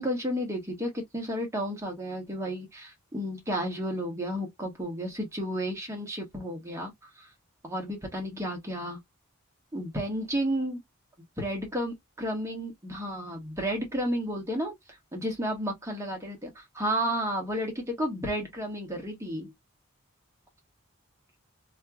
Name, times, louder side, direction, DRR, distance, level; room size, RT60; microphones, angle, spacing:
voice 1, 0.0-7.3 7.6-9.0 9.7-10.8 11.4-14.7 15.1-19.5, equal, 15° right, 1.3 m, -32 dB
3.1 x 2.9 x 2.3 m
head